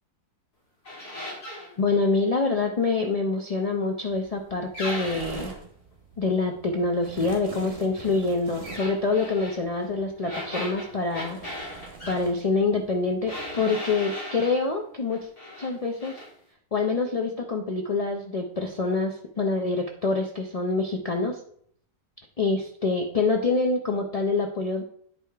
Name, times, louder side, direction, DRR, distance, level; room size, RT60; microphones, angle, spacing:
sound 1, 0.8-1.7 4.7-5.6 8.6-9.6 10.2-12.2 13.3-14.6 15.1-15.7 16.0-16.3, left 1 dB, 90° left, 3.7 m, -37 dB
voice 1, 1.8-5.5 6.2-11.4 12.1-15.2 15.6-16.2 16.7-21.4 22.4-24.8, left 3 dB, 70° left, 2 dB, 0.3 m, -26 dB
sound 2, 4.0-13.5, right 4 dB, 45° right, 1.3 m, -44 dB
9.7 x 4.8 x 3.3 m, 0.63 s
omnidirectional pair, 1.6 m